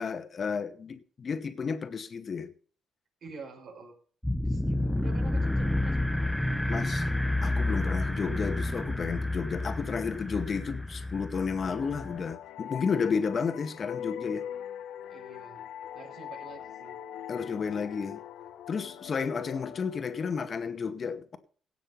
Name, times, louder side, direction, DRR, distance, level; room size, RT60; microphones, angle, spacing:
voice 1, 0.0-2.5 6.7-7.1 7.4-14.4 17.3-18.2 18.7-21.4, left 5 dB, 45° left, 2.1 m, -32 dB
voice 2, 3.2-4.0 4.4-6.2 15.1-15.6 15.9-17.0, right 4 dB, 60° right, 6.7 m, -47 dB
sound 1, 4.2-12.3, left 1 dB, ahead, 1.0 m, -30 dB
sound 2, 11.4-20.8, left 10 dB, 85° left, 1.1 m, -42 dB
17.5 x 7.5 x 5.7 m
cardioid pair, 90°, 0 cm